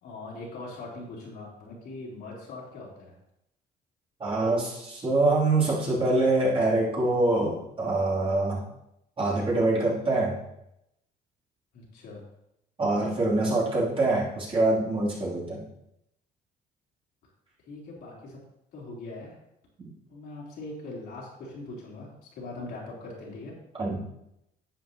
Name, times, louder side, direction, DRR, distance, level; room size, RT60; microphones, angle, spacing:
voice 1, 0.0-3.2 11.7-12.2 17.7-18.4 18.7-19.4 20.1-23.5, left 2 dB, 70° left, -5 dB, 3.6 m, -41 dB
voice 2, 4.2-8.6 9.2-10.4 12.8-15.6 19.8-19.9 23.8-24.0, right 2 dB, 30° right, -6 dB, 3.2 m, -25 dB
11.0 x 7.5 x 3.0 m, 0.83 s
cardioid pair, 110°, 17 cm